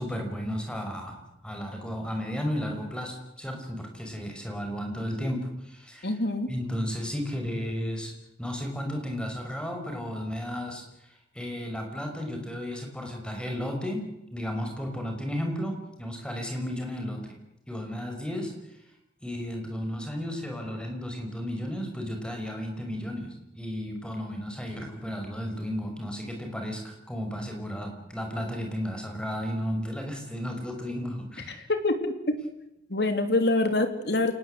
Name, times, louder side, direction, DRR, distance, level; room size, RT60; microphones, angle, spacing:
voice 1, 0.0-6.2 6.5-8.1 8.4-14.0 14.3-17.4 17.7-18.8 19.2-31.6, equal, 5° left, 3 dB, 5.4 m, -33 dB
voice 2, 6.0-6.5 31.8-31.9 32.3-32.4 32.9-34.3, left 2 dB, 60° left, 8 dB, 3.0 m, -25 dB
28.5 x 19.0 x 8.0 m, 0.85 s
head